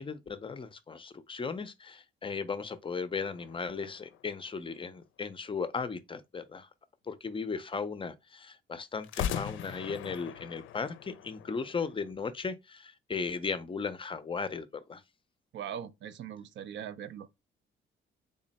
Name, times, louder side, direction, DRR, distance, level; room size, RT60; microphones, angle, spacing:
voice 1, 0.0-6.7 7.1-15.0, left 5 dB, 25° left, 0.5 m, -36 dB
sound 1, 3.2-5.0 9.0-12.1, left 9 dB, 75° left, 0.4 m, -40 dB
voice 2, 15.5-17.3, right 9 dB, 65° right, 0.5 m, -40 dB
3.6 x 2.0 x 4.0 m
cardioid pair, 90°, 20 cm